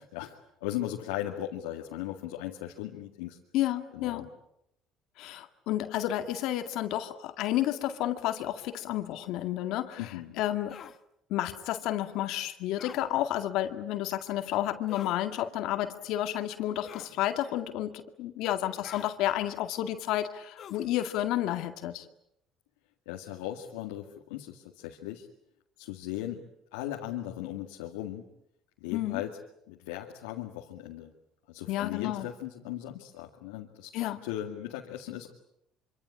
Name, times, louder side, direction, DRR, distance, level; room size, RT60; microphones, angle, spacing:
voice 1, 0.1-3.4 3.9-4.3 10.0-10.4 23.1-25.3 25.8-26.4 26.7-28.2 28.8-29.3 29.7-31.1 31.5-33.9 34.2-35.3, left 13 dB, 90° left, 1 dB, 2.1 m, -37 dB
voice 2, 3.5-4.3 5.2-10.1 10.4-10.8 11.3-22.1 28.9-29.2 31.7-32.3 33.9-34.2, left 13 dB, 70° left, 8 dB, 2.0 m, -31 dB
sound 1, 10.7-11.0 12.8-13.0 14.9-15.2 16.8-17.2 18.8-19.2 20.6-20.9, left 9 dB, 55° left, 1.4 m, -45 dB
26.0 x 25.5 x 8.7 m, 0.78 s
supercardioid pair, 80°, 0 cm